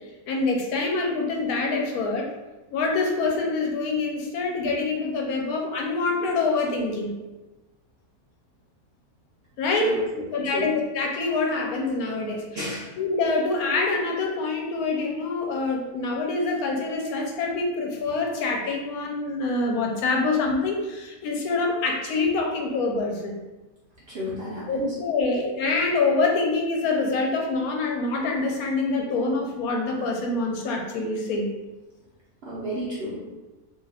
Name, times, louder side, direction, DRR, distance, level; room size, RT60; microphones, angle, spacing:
voice 1, 0.3-2.3 2.7-7.1 9.6-9.9 10.3-12.4 13.0-23.4 24.7-31.5, left 3 dB, 90° left, 1 dB, 1.1 m, -25 dB
voice 2, 9.7-10.3 10.5-10.7 12.5-12.9 24.1-24.9 32.4-33.3, equal, 55° right, -7 dB, 0.7 m, -31 dB
2.7 x 2.3 x 3.3 m, 1.1 s
omnidirectional pair, 1.5 m